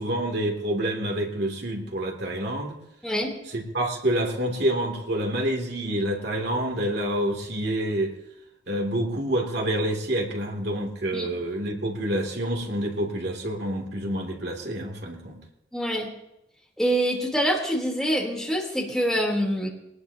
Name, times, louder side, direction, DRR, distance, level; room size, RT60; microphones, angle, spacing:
voice 1, 0.0-2.8 3.5-8.1 8.7-15.4, right 1 dB, 60° right, 1 dB, 2.9 m, -27 dB
voice 2, 15.7-16.1 16.8-19.7, equal, ahead, -2 dB, 3.5 m, -25 dB
21.5 x 19.5 x 2.9 m, 0.84 s
head